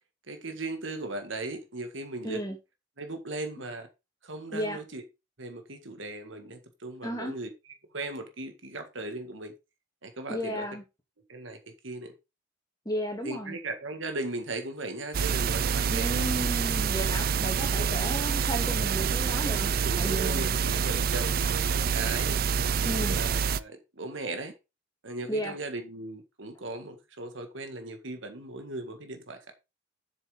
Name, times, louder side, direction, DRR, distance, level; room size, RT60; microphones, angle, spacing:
voice 1, 0.3-2.4 3.0-3.9 4.2-5.0 5.4-9.5 10.0-10.7 11.3-12.1 13.2-16.3 17.1-17.9 19.7-22.4 22.8-24.5 25.0-29.4, right 2 dB, 70° right, 1.7 m, -38 dB
voice 2, 2.2-2.6 4.5-4.8 7.0-7.3 10.3-10.8 12.9-13.6 15.9-20.5 22.8-23.2 25.3-25.5, equal, 20° left, 2.3 m, -33 dB
sound 1, 15.1-23.6, right 6 dB, 45° right, 0.4 m, -27 dB
7.8 x 7.0 x 3.7 m
head